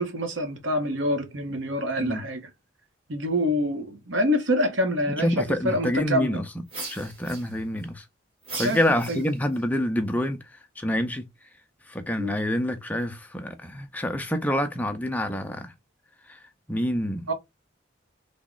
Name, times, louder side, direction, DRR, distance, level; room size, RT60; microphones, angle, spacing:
voice 1, 0.0-2.5 3.1-6.4 8.5-8.8 9.1-9.2 12.2-12.4 17.3-17.4, equal, 75° right, 0.8 m, -26 dB
voice 2, 5.1-6.4 6.9-8.0 8.6-11.3 11.9-15.7 16.3-16.4 16.7-17.3, left 1 dB, 10° left, 0.4 m, -27 dB
sound 1, 6.7-7.8 8.4-9.6, right 3 dB, 30° right, 1.1 m, -38 dB
3.4 x 2.1 x 3.8 m
head